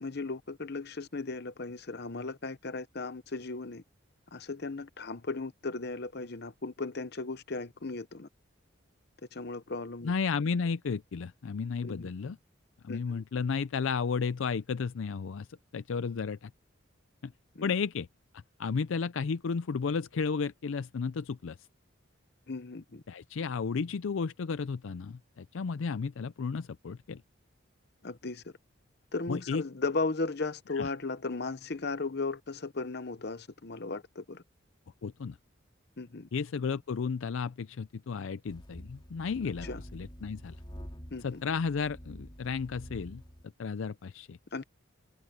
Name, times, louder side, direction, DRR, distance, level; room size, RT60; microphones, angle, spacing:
voice 1, 0.0-3.8 4.3-8.3 9.3-10.1 11.8-12.1 12.9-13.2 17.5-17.7 22.5-23.0 28.0-28.5 29.1-34.4 36.0-36.3 39.6-39.8 41.1-41.4 44.5-44.6, left 3 dB, 50° left, 0.9 m, -36 dB
voice 2, 10.0-12.4 12.8-15.5 15.7-16.5 17.2-17.3 17.6-18.1 18.6-21.6 23.1-27.2 29.3-29.6 30.8-30.9 35.0-35.4 36.3-40.6 41.2-43.2 43.6-44.4, left 5 dB, 75° left, 0.4 m, -33 dB
sound 1, 38.5-43.4, equal, 25° left, 4.0 m, -47 dB
head